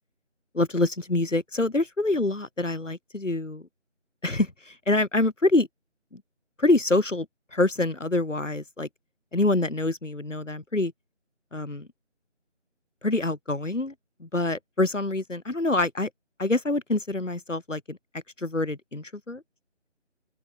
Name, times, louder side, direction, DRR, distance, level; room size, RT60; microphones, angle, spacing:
voice 1, 0.5-3.6 4.2-5.7 6.1-6.2 6.6-7.3 7.5-8.9 9.3-10.9 11.5-11.9 13.0-13.9 14.2-16.1 16.4-18.0 18.4-19.4, left 2 dB, 85° left, 4.0 m, -26 dB
figure-of-eight pair, 175°, 36 cm